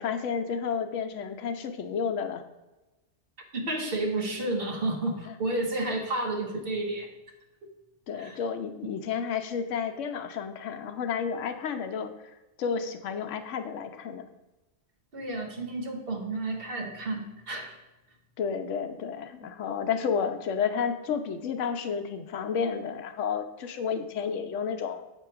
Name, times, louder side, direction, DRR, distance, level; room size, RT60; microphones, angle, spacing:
voice 1, 0.0-2.4 5.2-5.3 5.9-6.0 8.1-14.2 18.4-25.0, left 6 dB, 80° left, 7 dB, 1.0 m, -31 dB
voice 2, 3.5-7.1 8.1-8.4 15.1-17.8 19.4-19.5, right 2 dB, 50° right, 2 dB, 1.1 m, -31 dB
7.8 x 3.0 x 5.6 m, 1.0 s
omnidirectional pair, 1.3 m